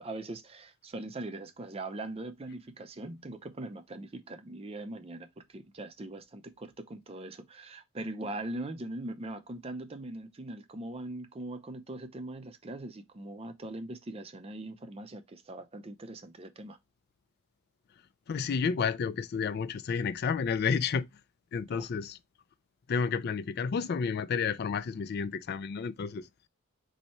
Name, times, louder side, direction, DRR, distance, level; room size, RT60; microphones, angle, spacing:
voice 1, 0.0-16.8 21.7-21.9, right 2 dB, 25° right, 0.5 m, -41 dB
voice 2, 18.3-21.1 21.5-22.2 22.9-26.3, left 6 dB, 45° left, 0.3 m, -31 dB
4.2 x 2.7 x 4.4 m
head